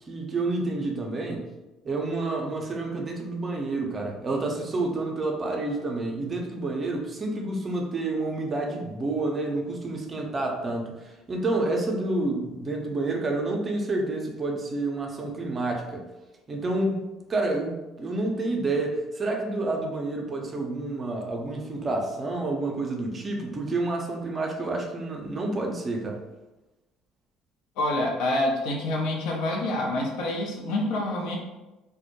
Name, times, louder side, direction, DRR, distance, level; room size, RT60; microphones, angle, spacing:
voice 1, 0.1-1.4 1.8-16.0 16.5-17.0 17.3-26.2, right 2 dB, 35° right, 1 dB, 0.5 m, -29 dB
voice 2, 27.8-31.4, left 1 dB, 70° left, -1 dB, 0.5 m, -27 dB
2.1 x 2.1 x 2.8 m, 1.0 s
hypercardioid pair, 60°, 0 cm